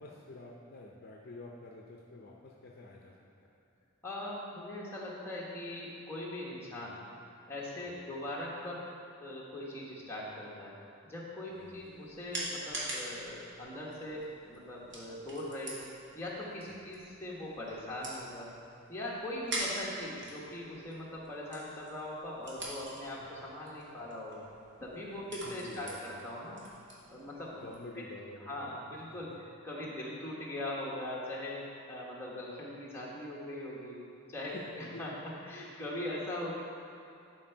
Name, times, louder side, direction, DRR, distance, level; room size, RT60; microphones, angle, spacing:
voice 1, 0.0-3.5 6.8-7.0 7.9-8.0 11.6-11.8 16.7-16.9 25.2-26.2 27.6-29.2 34.5-34.6 34.9-35.2, left 2 dB, 45° left, -2 dB, 0.6 m, -49 dB
voice 2, 4.0-7.0 7.5-8.9 9.2-10.8 11.0-15.9 16.1-18.5 18.9-24.4 24.8-26.6 27.1-27.6 28.4-34.0 34.3-35.1 35.4-36.5, left 1 dB, 10° left, -6 dB, 1.3 m, -41 dB
sound 1, 11.5-27.9, right 1 dB, 55° right, 1.7 m, -45 dB
11.5 x 4.4 x 4.5 m, 2.7 s
head